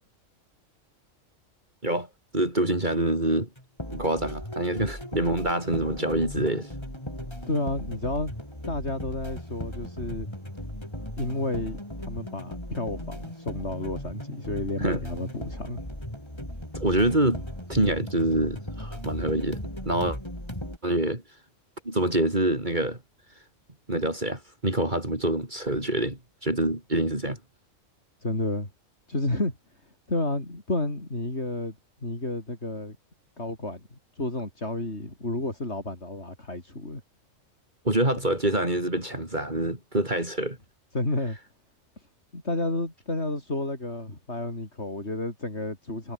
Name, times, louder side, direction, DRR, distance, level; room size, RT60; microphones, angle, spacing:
voice 1, 2.3-3.5 3.9-6.7 14.8-15.0 16.7-17.4 17.7-20.2 20.8-21.2 21.9-23.0 23.9-27.4 37.9-40.6, right 1 dB, 35° right, 5.4 m, -26 dB
sound 1, 3.6-20.8, left 1 dB, 20° left, 7.5 m, -37 dB
voice 2, 7.5-8.3 8.7-10.3 11.2-15.8 28.2-28.7 29.1-29.6 30.1-31.8 32.0-33.0 33.4-37.0 40.9-41.4 42.3-46.1, left 2 dB, 55° left, 6.1 m, -31 dB
omnidirectional pair, 1.4 m